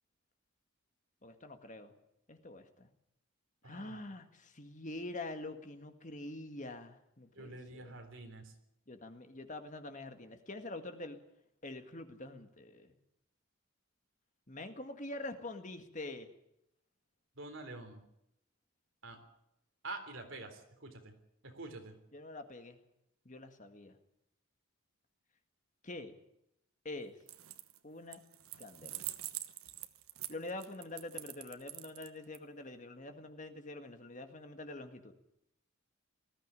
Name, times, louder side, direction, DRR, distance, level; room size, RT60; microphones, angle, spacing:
voice 1, 1.2-1.9 2.3-2.9 3.6-8.0 8.9-11.2 11.6-13.0 14.5-16.3 22.1-22.8 23.3-24.0 25.8-26.2 26.9-27.2 27.8-28.2 28.6-29.1 30.3-35.1, left 2 dB, 35° left, 7 dB, 1.9 m, -45 dB
voice 2, 3.6-4.0 7.3-8.5 17.4-18.0 19.0-19.2 19.8-21.1 21.4-22.0, right 2 dB, 60° right, 5 dB, 3.7 m, -47 dB
sound 1, 27.2-27.8 28.1-32.4, right 14 dB, 80° right, 1.2 m, -44 dB
19.5 x 14.5 x 9.9 m, 0.80 s
head